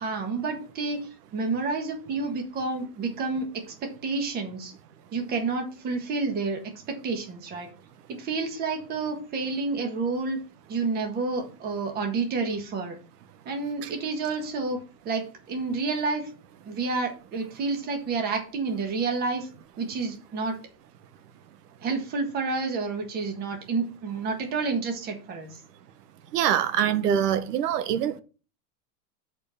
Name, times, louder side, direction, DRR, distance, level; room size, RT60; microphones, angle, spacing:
voice 1, 0.0-4.7 5.1-6.6 6.9-7.7 8.1-10.4 10.7-13.0 13.4-16.3 16.6-19.5 19.8-20.6 21.8-25.6, right 4 dB, 20° right, 1.5 m, -29 dB
voice 2, 26.3-28.2, right 9 dB, 80° right, 1.1 m, -24 dB
7.7 x 4.5 x 5.6 m
supercardioid pair, 175°, 46 cm